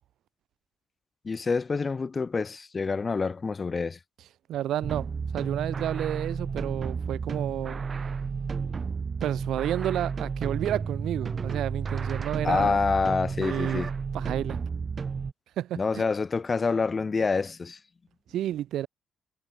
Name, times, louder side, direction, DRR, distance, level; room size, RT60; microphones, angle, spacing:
voice 1, 1.2-4.0 12.4-13.9 15.7-17.8, left 4 dB, 30° left, 5.9 m, -27 dB
voice 2, 4.5-7.8 9.2-12.8 13.4-13.8 14.1-14.6 15.6-16.0 18.3-18.9, right 12 dB, 75° right, 4.2 m, -31 dB
sound 1, 4.8-15.3, right 5 dB, 40° right, 5.7 m, -32 dB
cardioid pair, 90°, 0 cm